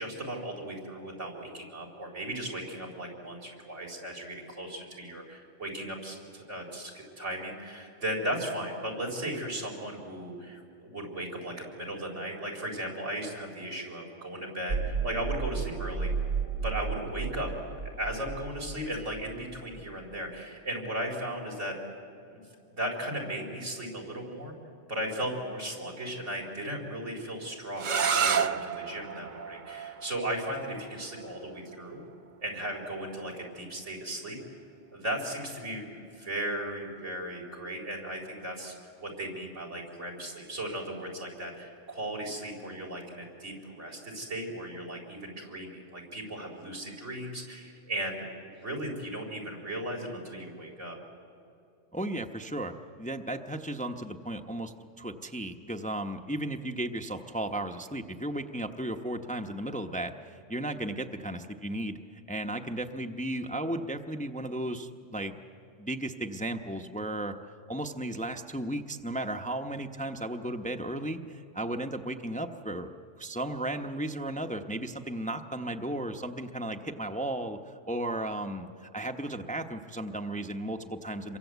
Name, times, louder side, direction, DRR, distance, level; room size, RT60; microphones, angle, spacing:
voice 1, 0.0-16.1 16.6-17.5 17.8-21.8 22.3-22.4 22.7-24.5 24.9-32.0 32.4-34.4 34.9-38.7 39.0-51.0, right 1 dB, 90° right, 0 dB, 4.7 m, -36 dB
sound 1, 14.7-20.1, right 5 dB, 75° right, 2.1 m, -33 dB
sound 2, 27.8-33.5, right 6 dB, 45° right, 0.8 m, -32 dB
voice 2, 51.9-52.7 53.0-62.0 62.3-65.3 65.8-67.3 67.7-72.9 73.2-81.4, right 1 dB, 10° left, 5 dB, 0.8 m, -35 dB
27.0 x 23.5 x 8.2 m, 2.6 s
omnidirectional pair, 1.2 m